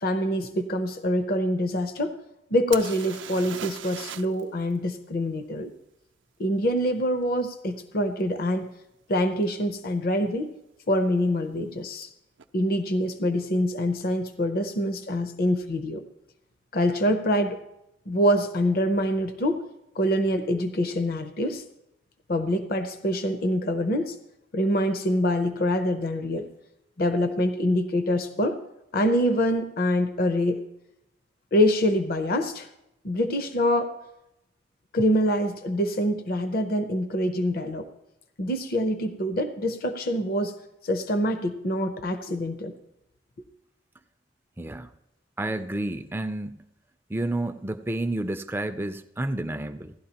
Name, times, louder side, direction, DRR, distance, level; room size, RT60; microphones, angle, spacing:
voice 1, 0.0-2.2 2.5-5.7 6.4-8.7 9.1-10.5 10.9-12.1 12.5-16.0 16.7-17.6 18.1-19.6 20.0-21.6 22.3-24.2 24.5-26.5 27.0-28.6 28.9-30.6 31.5-32.7 33.0-34.0 34.9-37.9 38.4-40.5 40.8-42.7, equal, 50° left, 8 dB, 0.6 m, -25 dB
sound 1, 2.7-4.4 4.7-4.8 8.2-8.3 9.0-9.1 9.4-10.0 12.0-12.1 12.4-12.5, right 9 dB, 80° right, 0.5 m, -39 dB
voice 2, 44.6-44.9 45.4-46.6 47.1-49.9, right 1 dB, 10° right, 9 dB, 0.4 m, -30 dB
16.5 x 12.0 x 2.9 m, 0.87 s
head